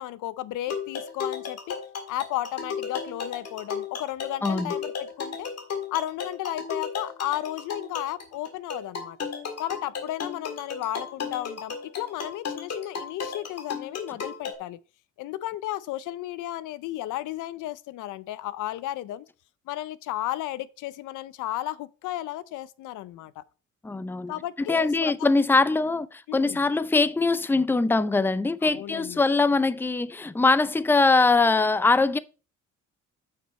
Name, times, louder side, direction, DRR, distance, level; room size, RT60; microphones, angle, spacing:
voice 1, 0.0-1.8 2.1-5.5 5.9-9.2 9.6-14.8 15.2-19.3 19.7-23.4 24.3-25.3 26.3-26.6 28.6-29.2, left 14 dB, 85° left, 0.6 m, -34 dB
sound 1, 0.7-14.5, left 6 dB, 55° left, 2.0 m, -34 dB
voice 2, 23.8-24.3 24.7-32.2, left 3 dB, 5° left, 0.5 m, -22 dB
8.7 x 5.8 x 4.2 m
cardioid pair, 90°, 30 cm